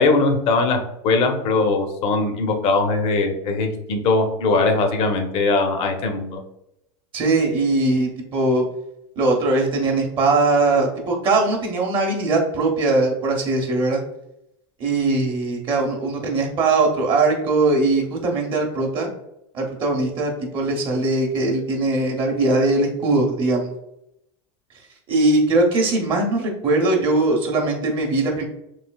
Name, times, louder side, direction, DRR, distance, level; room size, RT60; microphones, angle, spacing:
voice 1, 0.0-6.4, left 3 dB, 45° left, 5 dB, 0.6 m, -20 dB
voice 2, 7.1-8.6 9.2-14.0 14.8-19.1 19.5-23.7 25.1-28.5, right 2 dB, 35° right, 2 dB, 0.7 m, -20 dB
3.2 x 2.7 x 2.2 m, 0.81 s
supercardioid pair, 120°, 14 cm